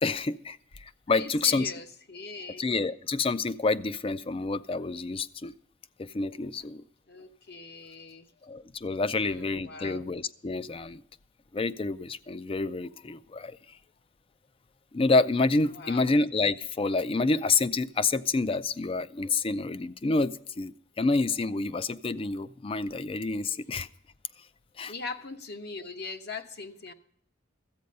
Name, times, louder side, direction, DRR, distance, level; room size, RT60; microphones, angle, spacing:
voice 1, 0.0-1.7 2.6-5.5 6.0-6.8 8.4-11.0 11.5-13.6 14.9-23.9 24.8-24.9, left 3 dB, 25° left, 15 dB, 0.4 m, -28 dB
voice 2, 1.1-2.6 7.1-8.3 9.2-10.1 15.7-16.1 24.9-26.9, left 4 dB, 55° left, 7 dB, 1.0 m, -41 dB
13.5 x 8.5 x 5.3 m, 0.66 s
head